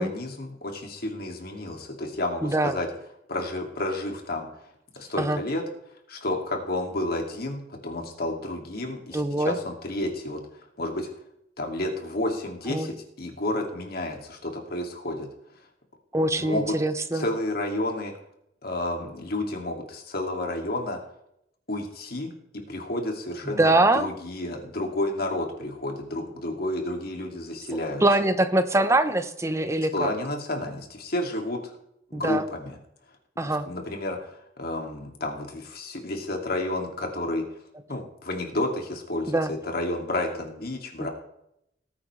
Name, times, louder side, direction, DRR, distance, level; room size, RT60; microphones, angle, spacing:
voice 1, 0.0-2.9 3.3-4.5 4.9-5.6 6.1-10.4 10.8-11.1 11.6-15.3 16.4-16.7 17.1-18.1 18.6-21.0 21.7-22.3 22.7-28.0 29.9-31.7 32.1-32.7 33.4-37.4 37.9-41.1, left 1 dB, 55° left, 2 dB, 2.3 m, -31 dB
voice 2, 2.4-2.8 5.2-5.4 9.1-9.6 12.7-12.9 16.1-17.3 23.5-24.1 27.7-30.1 32.1-32.5 33.4-33.7 39.3-39.5 41.0-41.1, right 2 dB, 15° right, 10 dB, 0.8 m, -23 dB
19.0 x 8.6 x 3.2 m, 0.77 s
head